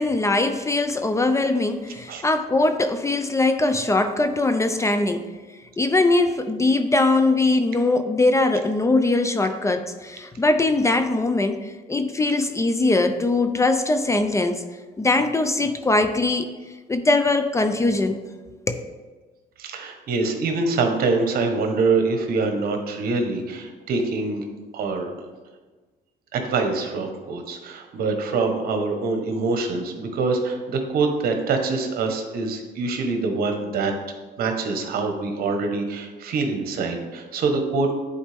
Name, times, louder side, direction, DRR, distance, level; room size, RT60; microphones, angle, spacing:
voice 1, 0.0-5.3 5.8-14.6 15.0-16.5 16.9-18.2 18.7-18.8, left 2 dB, 15° left, 7 dB, 0.5 m, -21 dB
voice 2, 19.6-24.4 24.7-25.1 26.3-33.9 34.4-37.9, right 3 dB, 60° right, 4 dB, 1.2 m, -24 dB
10.5 x 4.2 x 3.5 m, 1.3 s
cardioid pair, 110°, 17 cm